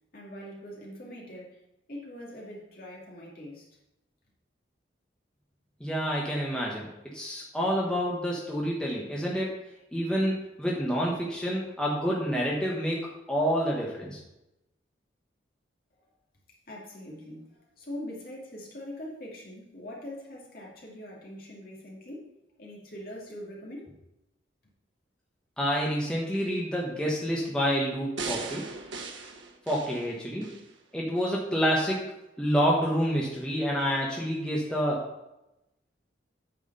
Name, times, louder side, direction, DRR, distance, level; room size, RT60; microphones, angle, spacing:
voice 1, 0.1-1.6 1.9-3.6 16.7-22.3 22.6-23.9, left 1 dB, 50° left, -3 dB, 2.4 m, -42 dB
voice 2, 5.8-6.9 7.1-9.6 9.9-14.2 25.6-28.6 29.7-30.5 30.9-32.0 32.4-35.1, equal, 5° left, -4 dB, 1.3 m, -28 dB
sound 1, 28.2-30.7 31.2-31.3, right 4 dB, 90° right, 1.2 m, -38 dB
8.7 x 4.9 x 5.5 m, 0.91 s
head